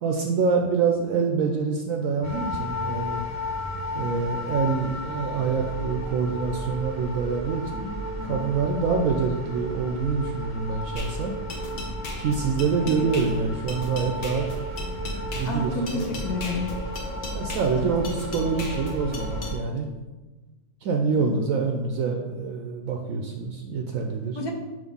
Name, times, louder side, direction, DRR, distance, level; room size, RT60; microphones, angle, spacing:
voice 1, 0.0-3.2 3.9-11.3 12.2-14.5 15.3-16.0 17.3-19.9 20.8-24.4, right 5 dB, 70° right, 2 dB, 0.9 m, -26 dB
sound 1, 2.2-19.5, equal, 10° left, 1.0 m, -33 dB
voice 2, 8.2-8.5 12.8-12.9 15.5-16.7 17.8-18.2 21.2-21.4 24.4-24.5, left 3 dB, 85° left, 1 dB, 1.5 m, -31 dB
sound 2, 11.0-19.6, left 2 dB, 40° left, 0.9 m, -38 dB
6.4 x 3.0 x 5.2 m, 1.2 s
omnidirectional pair, 1.6 m